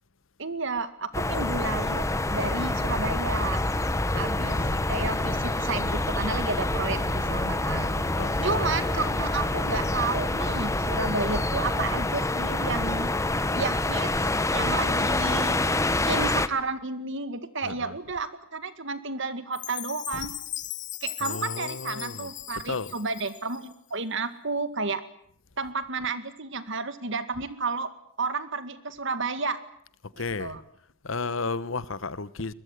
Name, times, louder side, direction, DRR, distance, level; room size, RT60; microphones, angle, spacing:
voice 1, 0.4-3.6 4.2-4.6 4.9-8.0 8.4-13.1 13.5-14.1 14.5-15.6 16.0-20.3 21.0-25.0 25.6-27.9 28.2-29.6 30.1-30.6, right 3 dB, 60° right, 2.1 m, -31 dB
sound 1, 1.1-16.5, left 2 dB, 15° left, 1.1 m, -27 dB
voice 2, 4.1-4.8 8.1-8.8 14.8-15.0 17.6-17.9 21.2-22.3 22.7-22.9 30.2-30.5 31.0-32.5, left 4 dB, 65° left, 1.1 m, -34 dB
sound 2, 4.4-11.8, equal, 35° right, 4.5 m, -36 dB
Chime, 19.5-23.7, left 12 dB, 35° left, 1.1 m, -38 dB
22.5 x 21.5 x 9.5 m
head